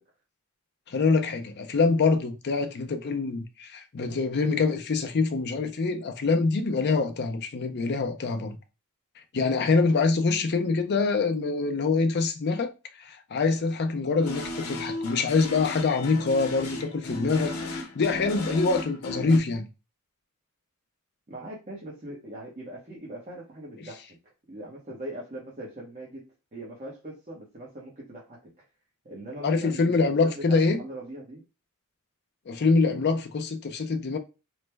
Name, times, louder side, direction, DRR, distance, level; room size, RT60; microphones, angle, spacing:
voice 1, 0.9-8.6 9.3-12.7 13.0-19.7 29.4-30.8 32.5-34.2, left 4 dB, 50° left, 0.5 m, -25 dB
sound 1, 14.2-19.4, left 2 dB, 80° left, 0.8 m, -35 dB
voice 2, 21.3-24.0 24.5-26.2 26.5-28.4 29.0-31.4 32.8-33.0, right 1 dB, 35° right, 0.9 m, -40 dB
3.1 x 2.1 x 3.3 m
head